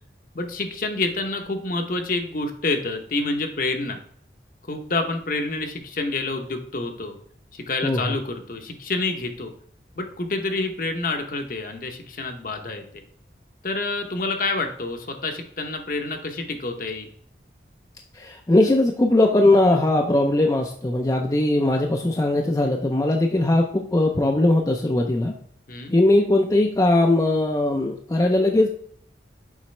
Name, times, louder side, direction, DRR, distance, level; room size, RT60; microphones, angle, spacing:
voice 1, 0.3-4.0 4.7-7.2 7.5-9.5 10.0-13.0 13.6-17.1 25.7-25.9, left 3 dB, 50° left, 5 dB, 0.8 m, -28 dB
voice 2, 7.8-8.1 18.1-25.3 25.9-28.7, left 2 dB, 20° left, 2 dB, 0.4 m, -20 dB
7.2 x 5.1 x 3.2 m, 0.63 s
head